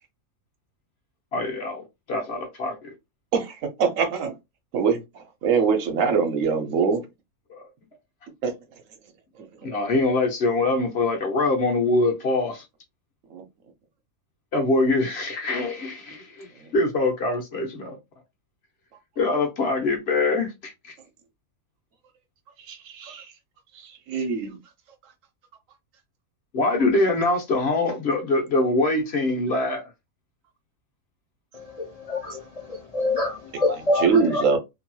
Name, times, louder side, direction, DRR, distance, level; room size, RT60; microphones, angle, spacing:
voice 1, 1.3-2.9 7.5-7.6 9.6-12.6 14.5-18.0 19.2-20.7 26.5-29.9, left 2 dB, 50° left, 0.9 m, -24 dB
voice 2, 3.3-4.4 4.7-7.0 8.4-8.5 13.3-13.4 16.6-16.7 22.7-23.3 23.7-24.6 33.9-34.6, right 5 dB, 65° right, 1.0 m, -23 dB
voice 3, 31.8-32.3 32.9-34.4, left 2 dB, 70° left, 0.3 m, -25 dB
2.9 x 2.7 x 2.2 m
omnidirectional pair, 1.6 m